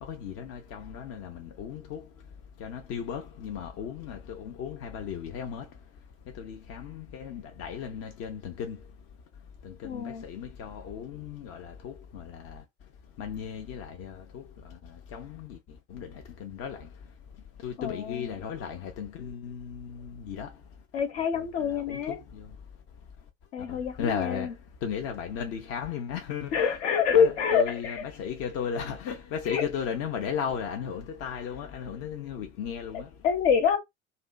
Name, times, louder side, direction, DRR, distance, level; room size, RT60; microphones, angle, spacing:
voice 1, 0.0-2.1 2.6-5.7 6.3-8.8 9.6-12.6 13.2-15.6 15.9-16.9 17.6-20.5 21.2-22.5 23.7-24.5 24.8-26.7 27.1-33.1, left 7 dB, 45° left, 0.6 m, -36 dB
voice 2, 9.8-10.2 17.8-18.3 20.9-22.2 23.5-24.5 26.5-28.0 29.5-29.6 33.2-33.8, left 7 dB, 65° left, 0.9 m, -26 dB
2.6 x 2.5 x 2.2 m
figure-of-eight pair, 70°, 35 cm